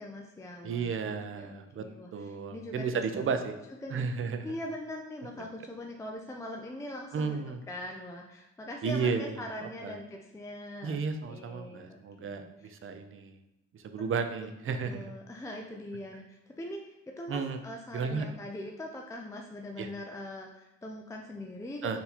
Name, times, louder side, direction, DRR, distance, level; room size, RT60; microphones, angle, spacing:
voice 1, 0.0-1.1 1.3-2.9 3.1-3.4 3.8-4.1 4.4-7.4 7.7-11.0 11.3-12.8 14.3-22.0, left 1 dB, 10° left, 1 dB, 0.4 m, -42 dB
voice 2, 0.6-1.8 2.1-3.5 3.9-4.5 7.1-7.6 8.8-9.9 10.8-13.4 13.7-15.1 17.3-17.6 17.9-18.3 19.8-19.9 21.8-22.0, right 5 dB, 45° right, 7 dB, 0.5 m, -33 dB
4.3 x 2.7 x 4.1 m, 0.93 s
cardioid pair, 90°, 30 cm